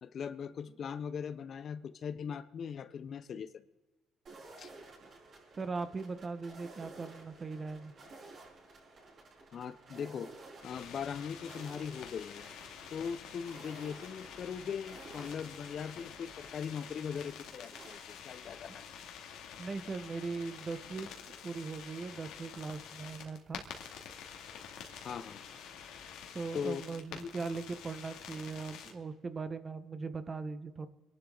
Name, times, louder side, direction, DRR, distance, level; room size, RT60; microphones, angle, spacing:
voice 1, 0.0-3.6 4.6-4.7 9.5-10.3 10.6-12.4 12.9-18.8 25.0-25.4 26.5-26.8 27.1-27.2, left 7 dB, 50° left, 14 dB, 0.7 m, -40 dB
sound 1, 4.2-18.0, right 2 dB, 45° right, 5.8 m, -54 dB
voice 2, 5.6-7.9 19.6-21.1 21.4-23.6 26.3-30.9, right 4 dB, 30° right, 12 dB, 1.1 m, -39 dB
sound 2, 10.6-28.9, left 7 dB, 80° left, 2.3 m, -48 dB
25.5 x 11.5 x 3.9 m, 1.2 s
cardioid pair, 110°, 0 cm